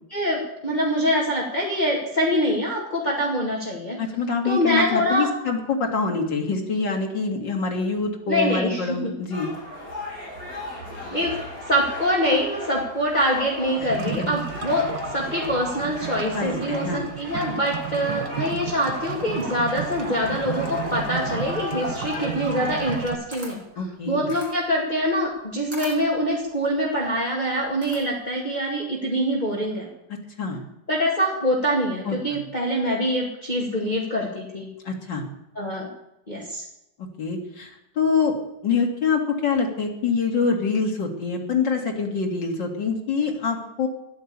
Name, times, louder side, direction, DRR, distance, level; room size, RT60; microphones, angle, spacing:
voice 1, 0.1-4.0 4.4-5.3 8.3-9.1 11.1-11.3 11.7-23.6 24.1-29.9 30.9-34.7 35.6-35.9 36.3-36.6, equal, 25° left, -3 dB, 2.4 m, -24 dB
voice 2, 4.0-9.5 13.8-14.3 16.3-17.1 23.8-24.3 30.4-30.6 32.1-32.4 34.8-35.2 37.2-38.3 38.6-43.9, left 5 dB, 80° left, 1 dB, 3.1 m, -25 dB
sound 1, 9.3-23.1, left 1 dB, 50° left, 6.9 m, -35 dB
sound 2, 13.9-23.2, right 9 dB, 60° right, 1.3 m, -34 dB
Camera, 22.9-28.4, right 1 dB, 15° right, 3.6 m, -43 dB
13.0 x 11.0 x 8.5 m, 0.87 s
omnidirectional pair, 2.0 m